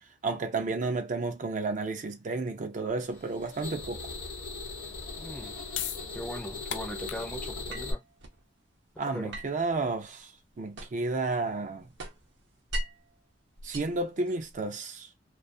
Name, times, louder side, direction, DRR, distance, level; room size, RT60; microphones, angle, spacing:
voice 1, 0.2-4.1 9.0-10.3 10.6-11.9 13.6-15.1, right 3 dB, 45° right, 0.4 m, -32 dB
sound 1, 3.1-7.9, left 3 dB, 55° left, 0.9 m, -39 dB
voice 2, 5.2-5.6 6.1-8.0 9.1-9.3, equal, 5° left, 0.5 m, -39 dB
sound 2, 5.7-12.0, left 10 dB, 75° left, 0.4 m, -42 dB
sound 3, 7.7-8.4 9.3-11.2 11.5-13.1 13.6-14.7, right 1 dB, 75° right, 0.7 m, -40 dB
2.4 x 2.3 x 2.5 m
head